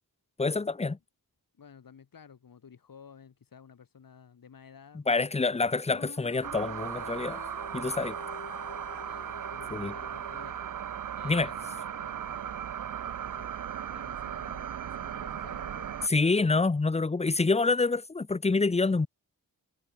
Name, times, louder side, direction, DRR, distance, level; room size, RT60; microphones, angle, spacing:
voice 1, 0.4-1.0 5.1-7.4 7.7-8.2 9.7-9.9 11.2-11.5 16.1-19.1, left 3 dB, 15° left, 0.8 m, -27 dB
voice 2, 1.6-5.7 8.9-10.6 11.2-12.8 13.2-13.5 13.9-16.0, left 7 dB, 65° left, 4.3 m, -53 dB
sound 1, 5.8-11.3, left 5 dB, 45° left, 3.1 m, -48 dB
sound 2, 6.4-16.1, right 9 dB, 55° right, 0.8 m, -37 dB
wide cardioid pair, 120°, 37 cm